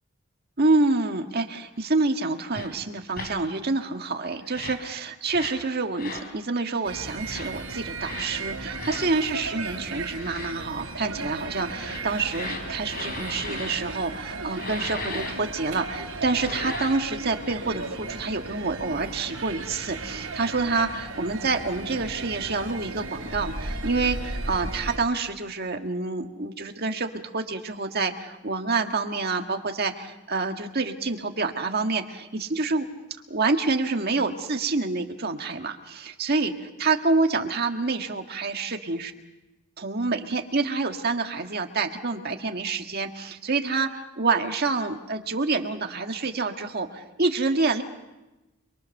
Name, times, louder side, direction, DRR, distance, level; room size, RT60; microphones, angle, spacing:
voice 1, 0.6-32.9 33.3-39.1 39.8-47.8, right 3 dB, 45° right, 5 dB, 1.7 m, -27 dB
sound 1, 2.5-2.7 3.1-3.3 4.4-4.8 5.3-5.6 5.9-6.3 7.2-7.5 8.0-8.3 8.8-9.1 10.1-10.5 11.6-13.8 14.5-15.3 16.2-17.0, left 3 dB, 45° left, 4.5 m, -37 dB
sound 2, 6.8-25.0, right 3 dB, 65° right, 4.2 m, -35 dB
28.5 x 23.0 x 6.6 m, 1.0 s
head